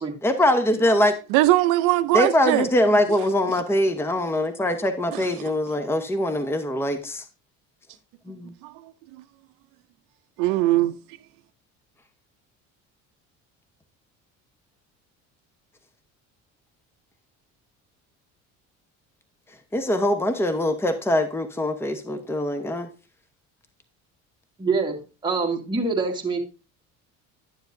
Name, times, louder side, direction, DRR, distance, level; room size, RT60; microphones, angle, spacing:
voice 1, 0.2-1.1 2.1-7.2 8.3-8.5 19.7-22.9, left 1 dB, 10° left, 0.9 m, -23 dB
voice 2, 1.3-2.7 5.1-5.3 8.6-8.9 10.4-10.9, right 16 dB, 85° right, 0.5 m, -21 dB
voice 3, 24.6-25.0 25.2-26.4, right 4 dB, 15° right, 1.6 m, -25 dB
10.5 x 7.0 x 2.6 m
cardioid pair, 115°, 31 cm